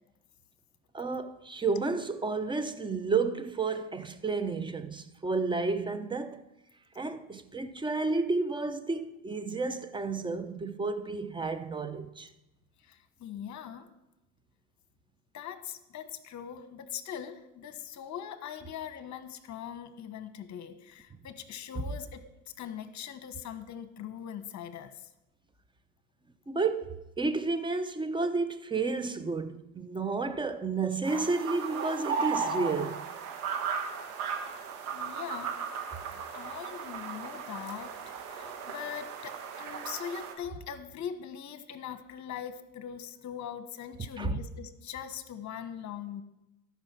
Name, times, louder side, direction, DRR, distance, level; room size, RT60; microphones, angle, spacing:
voice 1, 0.9-6.4 6.9-12.3 26.5-33.0 44.2-44.4, right 4 dB, 10° right, 0.7 m, -31 dB
voice 2, 12.8-13.9 15.3-22.2 22.6-25.1 34.9-35.6 36.3-46.2, left 9 dB, 40° left, 1.3 m, -41 dB
sound 1, 31.0-40.3, right 6 dB, 75° right, 1.8 m, -36 dB
13.0 x 5.7 x 6.0 m
hypercardioid pair, 90°, 45 cm